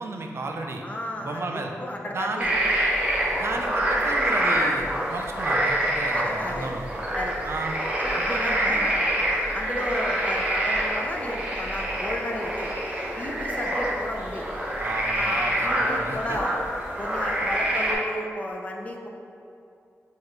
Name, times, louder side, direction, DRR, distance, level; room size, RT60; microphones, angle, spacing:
voice 1, 0.0-0.8 1.2-1.7 2.1-2.5 3.3-7.0 7.4-7.8 8.1-8.9 14.8-16.4, right 2 dB, 50° right, 3 dB, 0.3 m, -33 dB
voice 2, 0.8-2.5 6.1-6.7 7.2-7.3 8.0-9.1 9.5-12.7 13.2-14.5 15.1-16.5 17.0-19.1, left 1 dB, 25° left, 0 dB, 0.4 m, -33 dB
sound 1, 2.4-17.9, right 1 dB, 25° right, 0.7 m, -26 dB
6.1 x 2.4 x 3.2 m, 2.5 s
wide cardioid pair, 170°, 5 cm